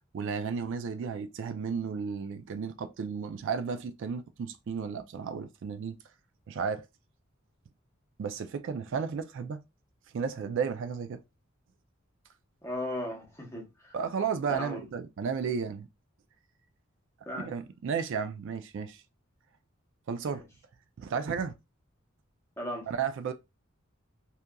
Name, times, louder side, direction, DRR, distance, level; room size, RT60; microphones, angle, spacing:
voice 1, 0.1-6.0 6.5-6.8 8.2-9.6 10.1-11.2 13.9-15.9 17.3-19.0 20.1-20.4 21.0-21.5 22.9-23.3, right 6 dB, 65° right, 0.3 m, -33 dB
voice 2, 12.6-13.9 14.5-14.8 17.3-17.5 20.3-20.4 22.6-22.9, left 1 dB, 15° left, 0.8 m, -36 dB
2.8 x 2.4 x 2.2 m
head